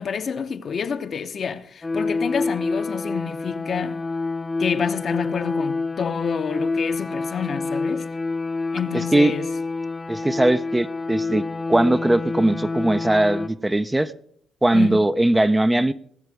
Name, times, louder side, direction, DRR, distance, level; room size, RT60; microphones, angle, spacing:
voice 1, 0.0-4.0 4.6-8.1 8.7-9.5 14.7-15.1, left 6 dB, 50° left, 0.9 m, -28 dB
sound 1, 1.8-13.5, left 3 dB, 20° left, 0.9 m, -27 dB
voice 2, 8.9-9.3 10.1-14.1 14.6-15.9, right 1 dB, 10° right, 0.5 m, -20 dB
19.0 x 6.8 x 4.9 m
cardioid pair, 90°, 0 cm